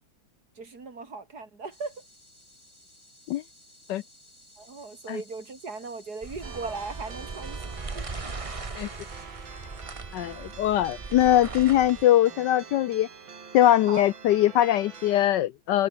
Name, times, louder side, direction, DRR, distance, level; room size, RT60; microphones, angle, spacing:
voice 1, 0.6-2.0 4.6-8.1 13.9-14.1, right 4 dB, 50° right, 3.6 m, -38 dB
sound 1, 1.7-9.3, left 1 dB, 15° left, 5.9 m, -55 dB
sound 2, 6.2-12.0, right 3 dB, 20° right, 1.0 m, -39 dB
sound 3, 6.4-15.3, right 6 dB, 85° right, 3.3 m, -45 dB
voice 2, 10.1-13.1 13.5-15.9, left 13 dB, 70° left, 1.1 m, -22 dB
omnidirectional pair, 2.1 m